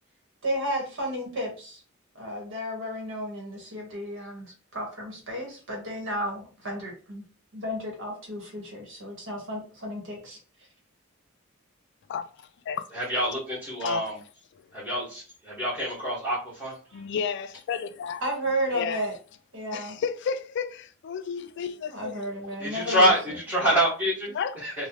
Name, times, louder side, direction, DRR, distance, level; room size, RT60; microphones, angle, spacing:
voice 1, 0.4-1.8 2.1-4.5 4.7-7.2 7.5-10.4 16.9-17.0 18.2-19.1 19.5-20.0 21.9-23.1, equal, 65° right, 1.3 m, -33 dB
voice 2, 12.1-12.9 13.8-14.1 16.9-18.2 18.7-19.1 19.7-22.3 22.8-23.1 24.3-24.6, left 6 dB, 60° left, 0.3 m, -32 dB
voice 3, 12.9-14.2 14.7-16.8 22.6-24.3 24.6-24.9, equal, 5° right, 1.4 m, -26 dB
3.1 x 2.3 x 2.8 m
head